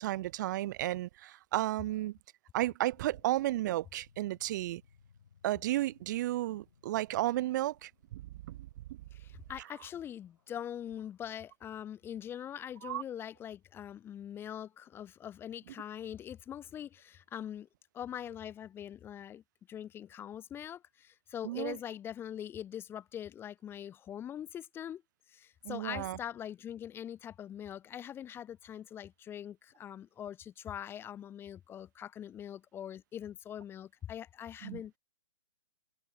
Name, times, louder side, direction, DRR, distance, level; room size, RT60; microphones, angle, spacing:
voice 1, 0.0-2.2 2.5-4.8 5.4-8.6 12.8-13.0 21.4-21.8 25.6-26.2 34.6-34.8, right 15 dB, 40° right, 0.6 m, -33 dB
sound 1, 2.9-11.5, left 7 dB, 65° left, 7.9 m, -67 dB
voice 2, 9.1-17.7 17.9-19.4 19.7-25.0 25.3-35.0, left 10 dB, 15° left, 0.8 m, -43 dB
figure-of-eight pair, 125°, 15 cm